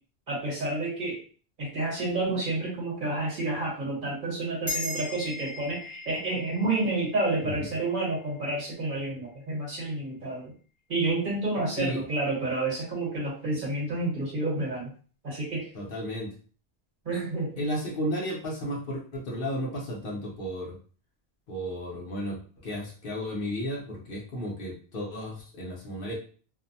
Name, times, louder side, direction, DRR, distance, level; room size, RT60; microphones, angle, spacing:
voice 1, 0.3-1.2 1.6-10.5 10.9-14.9 15.2-15.7 17.0-17.6, right 2 dB, 55° right, -4 dB, 1.2 m, -29 dB
sound 1, 4.7-9.4, left 2 dB, 30° left, 1.1 m, -39 dB
voice 2, 15.7-16.3 17.6-20.8 21.5-26.2, equal, 60° left, -2 dB, 0.9 m, -33 dB
2.6 x 2.1 x 2.7 m, 0.41 s
omnidirectional pair, 1.1 m